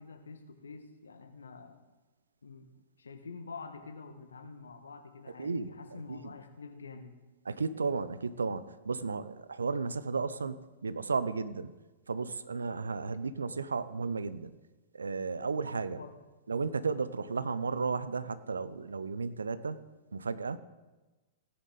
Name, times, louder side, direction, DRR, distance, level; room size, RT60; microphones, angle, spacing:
voice 1, 0.0-1.8 2.4-2.7 3.0-7.1 16.0-16.2, left 4 dB, 75° left, 7 dB, 1.3 m, -47 dB
voice 2, 5.4-6.3 7.5-11.7 12.1-14.5 14.9-16.0 16.5-19.8 20.1-20.6, right 4 dB, 80° right, 15 dB, 0.7 m, -34 dB
17.5 x 9.7 x 4.0 m, 1.2 s
figure-of-eight pair, 105°, 0 cm